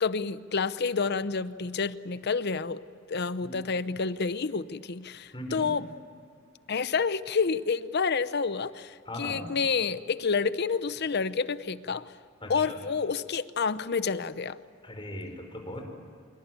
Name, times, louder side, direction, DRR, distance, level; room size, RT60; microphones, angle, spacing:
voice 1, 0.0-2.8 3.1-5.8 6.7-12.0 12.5-14.6, left 5 dB, 55° left, 15 dB, 0.7 m, -29 dB
voice 2, 5.3-5.7 9.0-9.5 12.4-12.8 14.8-15.8, left 1 dB, 25° left, 3 dB, 4.9 m, -39 dB
25.5 x 23.0 x 9.3 m, 2.3 s
head